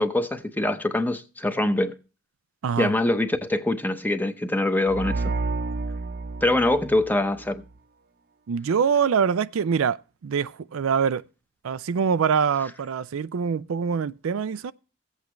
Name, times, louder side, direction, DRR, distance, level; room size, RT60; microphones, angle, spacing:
voice 1, 0.0-1.9 2.8-5.2 6.4-7.6, left 1 dB, 10° left, 0.8 m, -24 dB
sound 1, 4.8-7.7, right 3 dB, 50° right, 0.8 m, -30 dB
voice 2, 8.5-10.0 10.2-11.2 11.6-14.7, right 6 dB, 70° right, 0.4 m, -24 dB
16.0 x 8.2 x 3.1 m
head